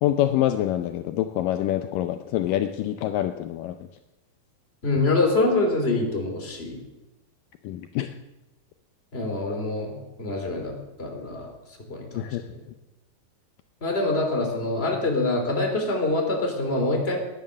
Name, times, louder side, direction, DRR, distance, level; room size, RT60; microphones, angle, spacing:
voice 1, 0.0-3.8 7.6-8.1 12.2-12.4, left 12 dB, 85° left, 7 dB, 1.9 m, -26 dB
voice 2, 4.8-6.8 9.1-11.5 11.9-12.6 13.8-17.2, left 2 dB, 15° left, 2 dB, 2.9 m, -25 dB
20.0 x 11.0 x 6.4 m, 1.1 s
omnidirectional pair, 4.7 m